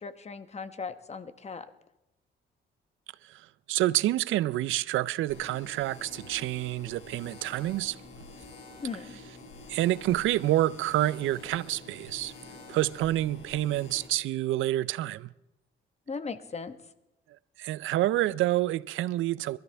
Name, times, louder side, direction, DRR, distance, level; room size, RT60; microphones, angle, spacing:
voice 1, 0.0-1.7 8.8-9.2 16.1-16.8, left 5 dB, 35° left, 1.1 m, -38 dB
voice 2, 3.7-8.0 9.7-12.3 12.7-15.3 17.6-19.6, right 15 dB, 80° right, 0.5 m, -28 dB
sound 1, 5.3-14.1, left 3 dB, 70° left, 4.2 m, -48 dB
23.0 x 13.5 x 3.4 m
cardioid pair, 90°, 20 cm